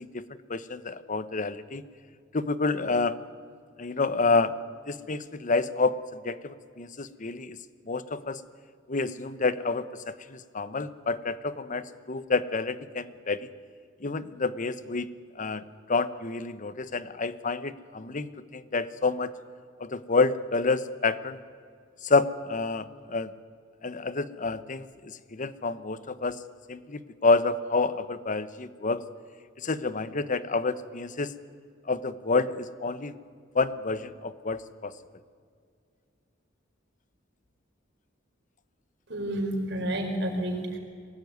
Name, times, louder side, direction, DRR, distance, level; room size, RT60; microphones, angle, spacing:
voice 1, 0.0-1.8 2.3-3.2 3.8-4.5 4.9-7.6 7.9-8.4 8.9-13.5 14.0-15.1 15.4-15.6 15.9-19.3 19.8-21.4 22.0-23.3 23.8-26.4 26.7-29.0 29.6-31.3 31.9-33.1 33.5-34.9, left 3 dB, 40° left, 14 dB, 1.0 m, -28 dB
voice 2, 39.1-40.8, right 1 dB, 65° right, 2 dB, 5.1 m, -30 dB
23.5 x 18.5 x 9.5 m, 2.2 s
head